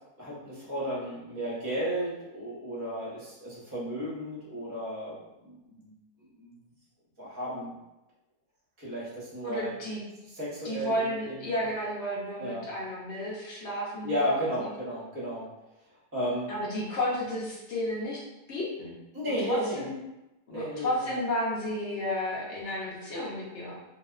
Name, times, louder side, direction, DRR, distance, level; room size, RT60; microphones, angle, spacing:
voice 1, 0.2-5.9 6.2-6.6 7.2-7.7 8.8-9.7 10.3-11.7 12.4-12.7 14.0-15.5 16.1-16.5 19.1-19.9 20.5-21.1, equal, 25° right, -8 dB, 0.4 m, -33 dB
voice 2, 9.4-10.0 10.6-14.7 16.5-18.2 18.5-19.0 19.3-19.9 20.5-23.8, left 1 dB, 60° left, -5 dB, 0.7 m, -32 dB
2.7 x 2.1 x 2.3 m, 0.97 s
omnidirectional pair, 1.7 m